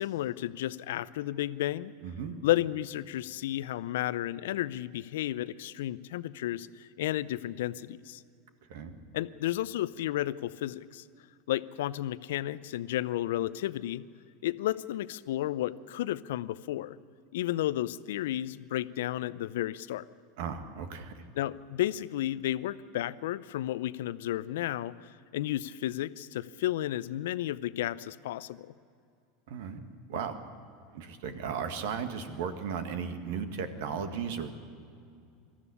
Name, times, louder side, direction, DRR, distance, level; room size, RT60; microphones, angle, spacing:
voice 1, 0.0-1.9 2.4-8.2 9.1-11.0 11.5-14.1 14.4-17.0 17.3-20.0 21.4-28.7, left 14 dB, 70° left, 17 dB, 0.6 m, -32 dB
voice 2, 2.0-2.4 8.7-9.0 20.4-21.2 29.5-29.8 30.1-30.4 30.9-34.5, right 6 dB, 65° right, 8 dB, 1.8 m, -35 dB
22.0 x 14.0 x 9.9 m, 2.4 s
hypercardioid pair, 85°, 0 cm